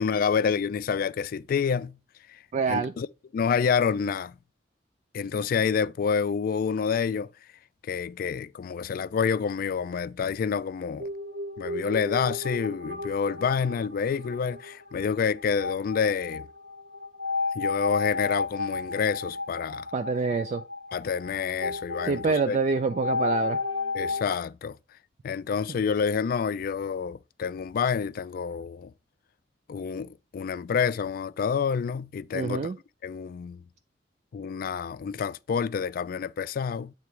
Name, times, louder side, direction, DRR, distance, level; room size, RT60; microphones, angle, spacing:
voice 1, 0.0-2.0 2.3-2.4 2.7-3.1 3.3-4.4 5.1-7.3 7.9-11.1 11.6-16.5 17.6-19.9 20.9-22.6 23.9-24.8 25.2-28.9 29.7-32.7 33.0-33.6 34.3-36.9, left 6 dB, 55° left, 0.3 m, -28 dB
voice 2, 2.5-2.9 19.9-20.6 22.1-23.6 32.3-32.8, right 5 dB, 40° right, 0.3 m, -26 dB
sound 1, 11.0-24.2, left 3 dB, 75° right, 1.3 m, -33 dB
8.2 x 3.4 x 4.7 m
head